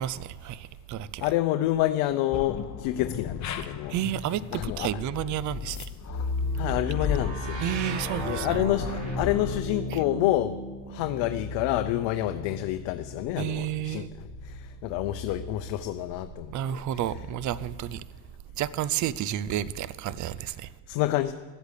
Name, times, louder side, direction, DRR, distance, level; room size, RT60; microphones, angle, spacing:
voice 1, 0.0-1.3 3.9-5.9 7.6-8.6 9.9-10.0 13.4-14.1 16.5-18.0 18.6-20.7, right 11 dB, 40° right, 0.6 m, -31 dB
voice 2, 1.2-4.0 4.5-4.9 6.6-7.6 8.2-8.9 9.2-10.6 10.9-14.1 14.4-16.8 20.9-21.3, left 14 dB, 70° left, 0.8 m, -28 dB
sound 1, 2.3-9.6, left 8 dB, 35° left, 1.1 m, -36 dB
sound 2, 6.1-15.9 16.9-17.9, left 1 dB, 70° right, 3.1 m, -35 dB
12.5 x 8.1 x 8.4 m
supercardioid pair, 105°, 48 cm